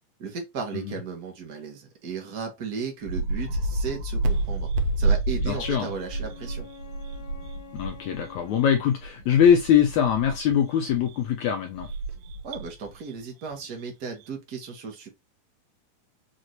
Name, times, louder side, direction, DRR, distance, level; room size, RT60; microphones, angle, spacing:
voice 1, 0.2-4.7 5.0-6.7 12.4-15.1, right 5 dB, 65° right, 0.9 m, -35 dB
sound 1, 3.0-10.6 10.9-13.1 13.5-13.6 14.0-14.3, right 2 dB, 90° right, 2.6 m, -29 dB
voice 2, 5.4-5.9 7.7-11.9, left 8 dB, 85° left, 1.6 m, -22 dB
Wind instrument woodwind instrument, 5.5-9.0, left 5 dB, 65° left, 1.8 m, -47 dB
6.3 x 2.6 x 3.0 m
omnidirectional pair, 4.0 m